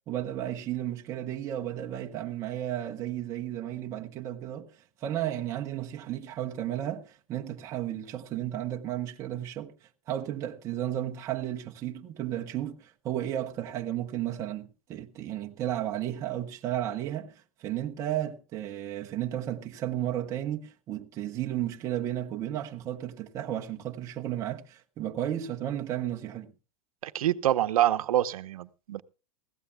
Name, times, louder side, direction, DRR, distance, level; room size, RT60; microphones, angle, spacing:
voice 1, 0.1-4.7 5.0-9.7 10.1-26.5, right 12 dB, 15° right, 0.8 m, -33 dB
voice 2, 27.0-29.0, right 12 dB, 85° right, 0.8 m, -26 dB
21.0 x 16.0 x 2.3 m
supercardioid pair, 180°, 18 cm